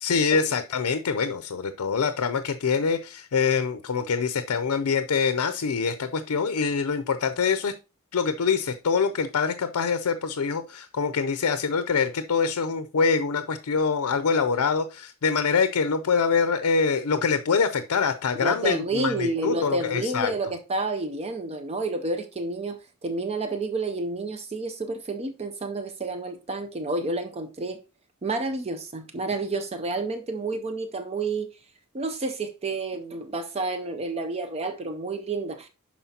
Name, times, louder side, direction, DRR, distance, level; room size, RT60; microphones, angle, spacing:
voice 1, 0.0-7.7 8.1-20.3, left 5 dB, 80° left, 0.5 m, -25 dB
voice 2, 18.4-27.8 28.2-31.5 31.9-35.7, right 2 dB, 30° right, 0.5 m, -30 dB
11.5 x 4.3 x 2.8 m
head